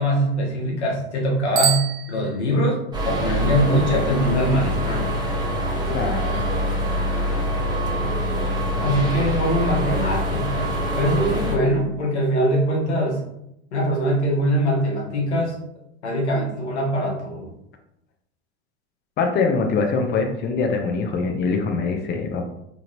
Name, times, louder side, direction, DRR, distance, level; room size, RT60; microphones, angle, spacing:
voice 1, 0.0-2.8 3.0-5.2 8.8-13.2 13.7-15.6 16.0-17.5, equal, 90° left, -1 dB, 1.0 m, -22 dB
Bicycle bell, 1.5-2.8, right 10 dB, 45° right, 0.6 m, -26 dB
sound 1, 2.9-11.6, equal, 15° right, 0.8 m, -24 dB
voice 2, 5.9-6.4 19.2-22.4, left 4 dB, 30° left, 3 dB, 0.5 m, -23 dB
2.9 x 2.8 x 2.6 m, 0.80 s
hypercardioid pair, 90°, 33 cm